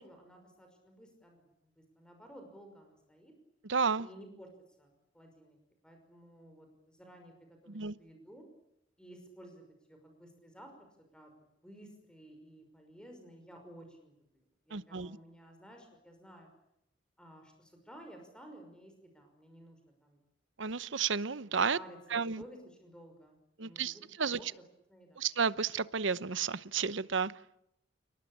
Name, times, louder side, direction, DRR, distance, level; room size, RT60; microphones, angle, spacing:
voice 1, 0.0-3.3 4.0-4.5 4.8-5.6 5.8-8.5 9.0-10.7 11.1-11.3 11.6-14.2 14.7-16.5 17.2-20.2 21.7-22.0 22.4-24.0 24.3-24.5 24.9-25.2, equal, 5° left, 4 dB, 5.7 m, -54 dB
voice 2, 3.7-4.1 7.7-8.0 14.7-15.2 20.6-21.8 22.1-22.4 23.6-24.5 25.2-27.3, right 5 dB, 70° right, 16 dB, 0.9 m, -32 dB
29.5 x 19.0 x 8.7 m, 0.82 s
head